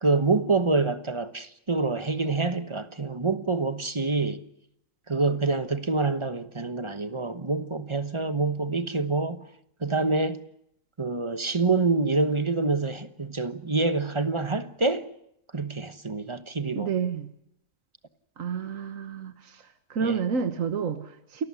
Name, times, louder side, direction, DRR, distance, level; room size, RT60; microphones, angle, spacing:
voice 1, 0.0-4.5 5.1-9.5 9.8-10.4 11.0-15.1 15.5-16.9 20.0-20.2, right 3 dB, 25° right, 1.1 m, -26 dB
voice 2, 16.8-17.3 18.4-19.6 19.9-21.4, right 6 dB, 80° right, 1.7 m, -29 dB
28.5 x 14.5 x 9.7 m
omnidirectional pair, 1.4 m